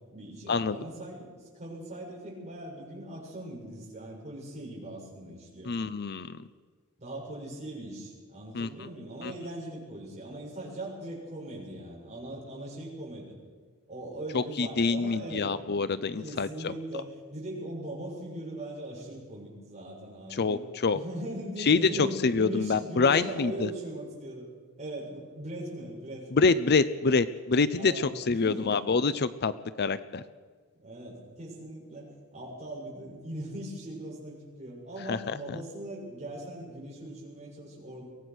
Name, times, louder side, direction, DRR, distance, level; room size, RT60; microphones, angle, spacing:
voice 1, 0.1-5.7 7.0-13.4 13.9-15.5 16.2-20.6 20.9-24.5 24.8-26.3 27.8-28.1 28.4-29.0 30.7-38.0, right 1 dB, 30° right, -3 dB, 7.5 m, -40 dB
voice 2, 5.7-6.4 8.5-8.9 9.2-9.3 14.3-16.7 20.3-21.0 21.6-23.7 26.3-29.5 29.8-30.2 35.1-35.6, left 4 dB, 50° left, 14 dB, 0.7 m, -26 dB
23.5 x 17.5 x 6.3 m, 1.5 s
head